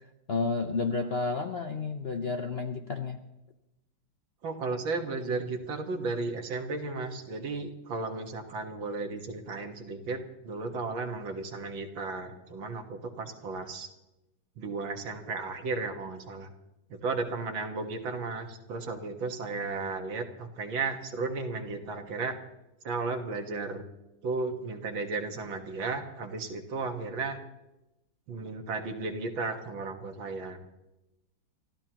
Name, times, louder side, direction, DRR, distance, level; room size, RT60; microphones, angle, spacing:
voice 1, 0.3-3.2, left 4 dB, 55° left, 6 dB, 0.7 m, -31 dB
voice 2, 4.4-13.9 14.6-16.5 16.9-22.4 22.8-23.8 24.2-27.4 28.3-30.6, right 3 dB, 80° right, 4 dB, 2.4 m, -34 dB
28.0 x 14.5 x 3.0 m, 0.94 s
omnidirectional pair, 2.1 m